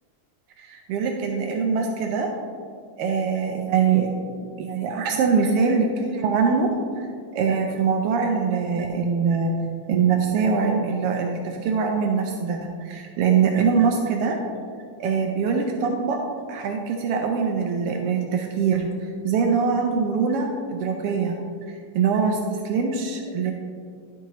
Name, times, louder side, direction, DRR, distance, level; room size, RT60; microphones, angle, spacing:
voice 1, 0.6-2.3 3.0-4.1 4.4-6.7 7.0-7.1 7.3-9.5 9.9-14.4 15.0-16.2 16.5-21.4 21.7-23.5, right 5 dB, 90° right, 2 dB, 1.3 m, -23 dB
10.0 x 7.1 x 3.0 m, 2.2 s
omnidirectional pair, 3.3 m